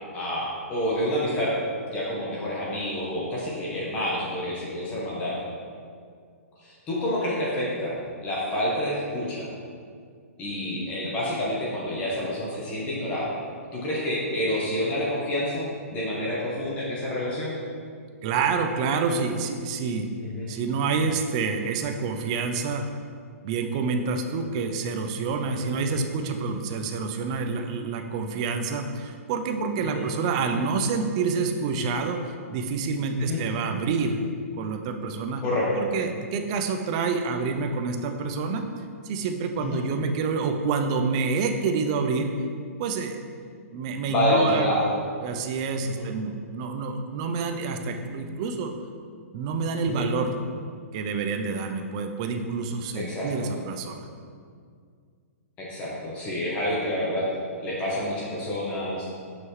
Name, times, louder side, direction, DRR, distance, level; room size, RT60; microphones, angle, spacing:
voice 1, 0.1-1.5 1.9-5.4 6.6-7.9 8.2-9.5 10.4-13.3 13.7-17.6 20.2-20.5 25.6-25.8 29.8-30.0 33.2-33.4 35.4-35.7 39.6-39.8 44.1-44.9 45.8-46.1 49.8-50.1 52.9-53.5 55.6-57.3 57.6-59.1, left 1 dB, 15° left, -5 dB, 0.8 m, -28 dB
voice 2, 18.2-20.1 20.5-22.9 23.4-34.2 34.6-35.4 35.7-38.6 39.0-42.3 42.8-43.2 43.7-44.7 45.2-48.7 49.3-50.4 50.9-54.0, right 4 dB, 25° right, 5 dB, 0.3 m, -28 dB
6.0 x 5.6 x 3.1 m, 2.1 s
hypercardioid pair, 170°, 8 cm